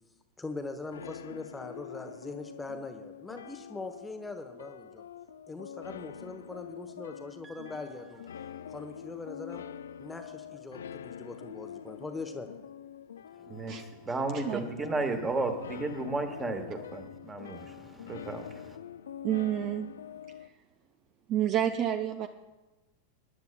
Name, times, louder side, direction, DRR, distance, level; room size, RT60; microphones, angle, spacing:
voice 1, 0.4-5.1 5.5-8.2 8.7-9.6 10.0-12.5, left 3 dB, 10° left, 6 dB, 0.9 m, -41 dB
sound 1, 0.9-20.5, left 9 dB, 65° left, 0.4 m, -45 dB
voice 2, 13.4-18.8, right 3 dB, 15° right, 6 dB, 1.5 m, -34 dB
voice 3, 19.2-19.9 21.3-22.3, right 11 dB, 35° right, 9 dB, 0.5 m, -29 dB
23.0 x 10.5 x 2.2 m, 1.1 s
figure-of-eight pair, 90°, 0 cm